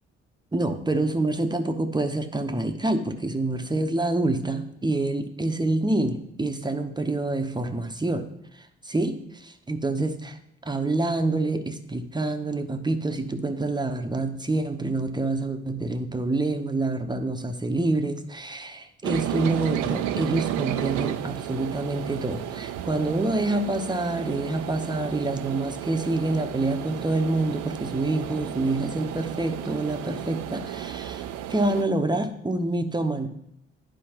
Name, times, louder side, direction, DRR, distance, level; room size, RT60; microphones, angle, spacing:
voice 1, 0.5-8.3 8.8-33.3, right 2 dB, 15° right, 6 dB, 0.9 m, -27 dB
sound 1, 19.0-31.8, right 12 dB, 60° right, 0.5 m, -33 dB
11.0 x 4.6 x 2.9 m, 0.79 s
figure-of-eight pair, 40°, 33 cm